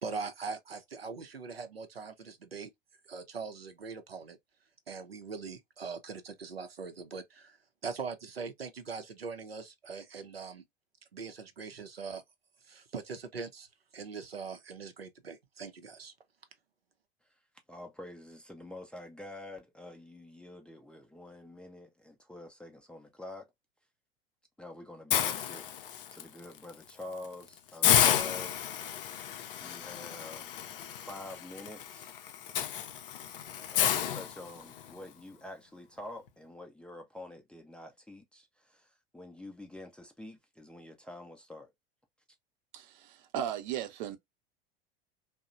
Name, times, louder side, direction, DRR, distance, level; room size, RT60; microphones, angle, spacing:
voice 1, 0.0-2.7 3.0-4.4 4.9-7.6 7.8-10.6 11.1-12.2 12.6-13.7 13.9-16.1, right 5 dB, 90° right, 0.6 m, -41 dB
voice 2, 17.7-23.5 24.6-25.7 26.1-29.2 29.6-32.1 33.7-41.7, left 2 dB, 5° left, 0.4 m, -47 dB
Hiss, 25.1-26.2 26.7-26.9 27.2-27.3 27.8-34.9, left 10 dB, 70° left, 0.5 m, -31 dB
voice 3, 42.7-44.2, right 10 dB, 55° right, 0.7 m, -36 dB
2.8 x 2.0 x 2.4 m
figure-of-eight pair, 80°, 29 cm